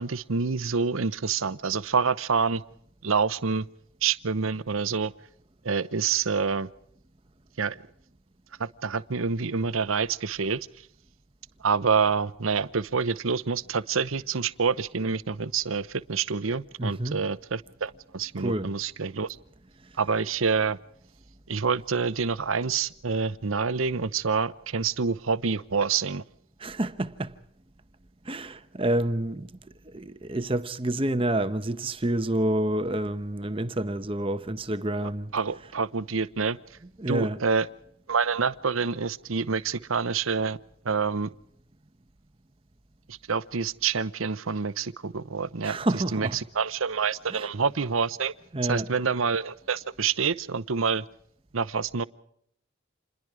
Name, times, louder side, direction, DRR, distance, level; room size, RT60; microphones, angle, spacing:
voice 1, 0.0-2.6 3.0-3.7 4.0-5.1 5.6-6.7 7.6-7.8 8.6-10.7 11.6-19.4 20.0-20.8 21.5-26.2 35.0-36.6 37.1-37.7 38.1-40.6 40.8-41.3 43.1-48.3 48.7-51.0 51.5-52.0, right 5 dB, 80° right, 0.8 m, -27 dB
voice 2, 16.8-17.2 18.4-18.7 26.6-27.3 28.2-29.6 29.9-35.3 37.0-37.4 45.6-46.4 47.3-47.5 48.5-48.9, right 1 dB, 25° right, 0.9 m, -28 dB
27.5 x 21.5 x 4.8 m
head